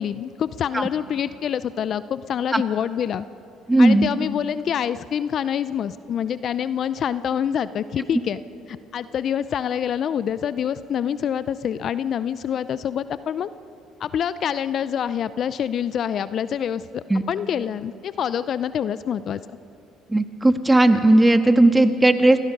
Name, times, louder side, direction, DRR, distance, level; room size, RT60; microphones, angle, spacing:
voice 1, 0.0-3.3 3.8-8.4 8.7-13.5 14.0-19.4, left 8 dB, 55° left, 15 dB, 0.5 m, -26 dB
voice 2, 3.7-4.1 17.1-17.2 20.1-22.4, right 2 dB, 15° right, 8 dB, 1.5 m, -16 dB
26.5 x 18.0 x 5.4 m, 2.7 s
hypercardioid pair, 65°, 0 cm